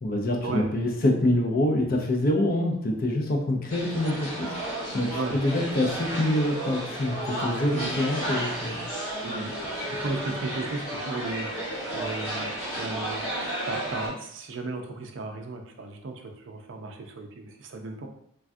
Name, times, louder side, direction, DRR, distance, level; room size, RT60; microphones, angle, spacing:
voice 1, 0.0-4.5 4.9-8.8, left 1 dB, 45° left, 2 dB, 0.5 m, -25 dB
sound 1, 3.7-14.1, right 1 dB, 70° left, 1.2 m, -33 dB
voice 2, 7.7-8.0 9.2-9.6 10.0-12.5 12.8-13.3 13.7-18.1, right 3 dB, 60° right, 4 dB, 0.4 m, -35 dB
3.3 x 2.3 x 2.5 m, 0.73 s
head